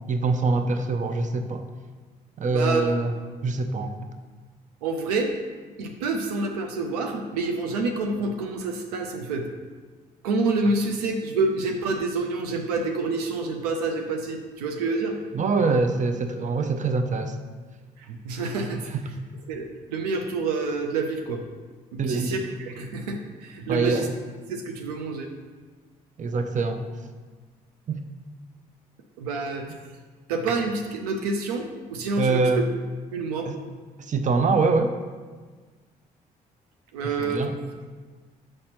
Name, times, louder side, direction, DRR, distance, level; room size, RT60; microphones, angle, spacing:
voice 1, 0.1-1.6 2.4-3.1 3.4-3.9 15.3-17.3 22.0-22.4 23.7-24.1 26.2-26.8 27.9-28.0 32.2-32.6 33.5-33.6 34.1-34.9 37.2-37.5, right 3 dB, 40° right, 7 dB, 0.6 m, -24 dB
voice 2, 2.5-2.9 4.8-5.4 5.8-9.5 10.2-15.2 18.0-19.2 19.5-21.4 21.9-24.1 24.5-25.3 29.2-29.7 30.3-32.6 33.1-33.5 36.9-37.5, right 3 dB, 90° right, 3 dB, 0.5 m, -28 dB
6.4 x 4.3 x 4.2 m, 1.4 s
hypercardioid pair, 50°, 19 cm